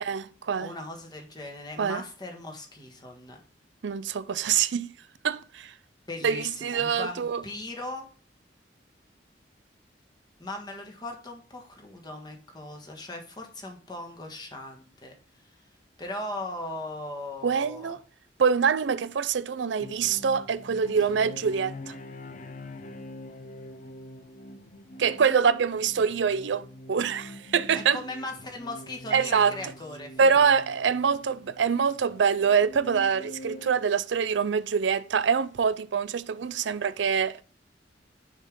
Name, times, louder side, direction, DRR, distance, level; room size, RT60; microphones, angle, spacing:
voice 1, 0.0-0.7 1.8-2.0 3.8-4.9 5.2-5.7 6.2-7.4 17.4-18.0 18.4-21.9 25.0-28.0 29.1-29.6 30.2-37.4, right 6 dB, 80° right, 0.5 m, -25 dB
voice 2, 0.6-3.4 6.1-8.1 10.4-15.1 16.0-18.0 25.1-25.3 27.7-30.6, left 1 dB, 25° left, 1.4 m, -39 dB
sound 1, 19.8-33.7, left 1 dB, 45° left, 0.5 m, -44 dB
6.5 x 3.6 x 5.2 m
head